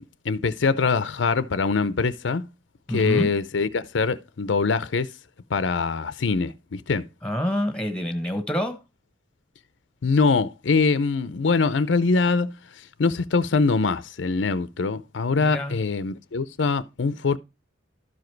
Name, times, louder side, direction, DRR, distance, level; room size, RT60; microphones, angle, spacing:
voice 1, 0.0-2.5 2.9-5.1 5.5-7.0 10.0-12.5 13.0-17.4, left 4 dB, 80° left, 0.6 m, -23 dB
voice 2, 2.9-3.3 7.2-8.8 15.4-15.8, left 1 dB, 5° left, 1.1 m, -27 dB
12.5 x 5.0 x 4.5 m
head